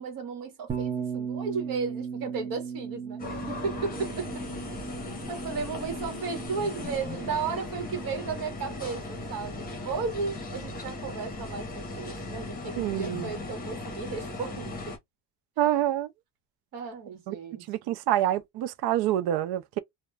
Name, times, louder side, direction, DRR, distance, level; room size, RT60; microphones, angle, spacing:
voice 1, 0.0-4.5 5.3-15.0 16.7-17.6, right 5 dB, 55° right, 1.2 m, -34 dB
Bass guitar, 0.7-6.9, right 6 dB, 15° right, 0.5 m, -37 dB
sound 1, 3.2-15.0, left 2 dB, 20° left, 0.8 m, -37 dB
voice 2, 12.8-13.3 15.6-16.1 17.3-17.4 17.7-19.8, right 12 dB, 70° right, 0.5 m, -27 dB
2.3 x 2.2 x 3.1 m
cardioid pair, 175°, 40 cm